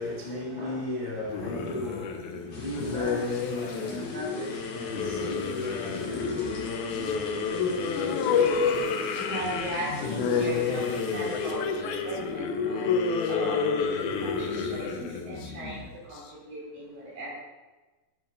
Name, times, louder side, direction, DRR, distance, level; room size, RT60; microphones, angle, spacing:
voice 1, 0.0-8.8, left 1 dB, 25° left, 1.0 m, -37 dB
sound 1, 1.3-16.2, left 5 dB, 75° left, 1.9 m, -29 dB
voice 2, 1.3-2.6 9.1-17.3, right 1 dB, 70° right, 6.1 m, -38 dB
sound 2, 2.5-11.6, left 2 dB, 45° left, 2.5 m, -46 dB
11.5 x 7.6 x 5.3 m
omnidirectional pair, 4.3 m